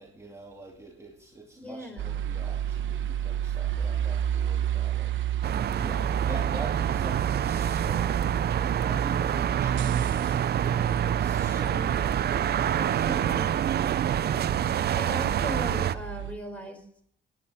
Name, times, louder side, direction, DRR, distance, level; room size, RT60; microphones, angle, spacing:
voice 1, 0.0-13.5, right 2 dB, 15° right, 2.4 m, -44 dB
voice 2, 1.6-2.2 11.7-11.9 13.0-13.5 14.7-16.8, equal, 5° left, 4.7 m, -38 dB
sound 1, 2.0-16.3, right 9 dB, 70° right, 1.2 m, -32 dB
sound 2, 5.4-16.0, right 10 dB, 55° right, 0.6 m, -27 dB
19.5 x 10.5 x 4.3 m
cardioid pair, 90°, 20 cm